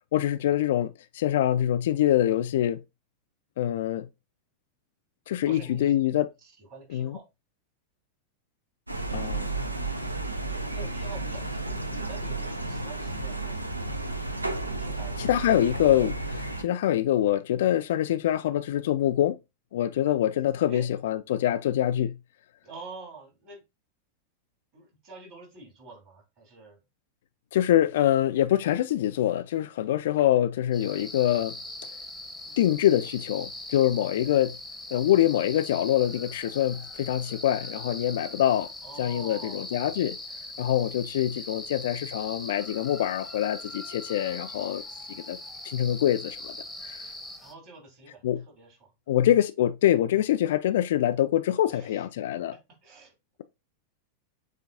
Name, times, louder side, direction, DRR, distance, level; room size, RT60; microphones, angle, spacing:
voice 1, 0.1-2.8 3.6-4.1 5.3-6.3 6.9-7.2 9.1-9.5 15.2-19.4 19.7-22.2 27.5-31.6 32.6-34.6 34.9-38.7 39.0-40.2 40.6-44.8 45.3-45.4 45.6-46.5 46.8-47.0 48.2-48.4 49.1-52.5, left 12 dB, 55° left, 0.3 m, -25 dB
voice 2, 5.4-5.9 6.6-7.2 10.5-13.6 14.8-15.5 20.3-20.9 22.6-23.6 24.7-26.8 32.4-33.0 38.8-39.6 47.4-48.9 51.7-52.4 52.8-53.1, right 3 dB, 40° right, 2.8 m, -47 dB
sound 1, 8.9-16.6, right 2 dB, 85° right, 0.5 m, -32 dB
sound 2, 30.7-47.5, left 1 dB, 5° left, 0.8 m, -41 dB
7.3 x 2.5 x 2.6 m
figure-of-eight pair, 90°, 0 cm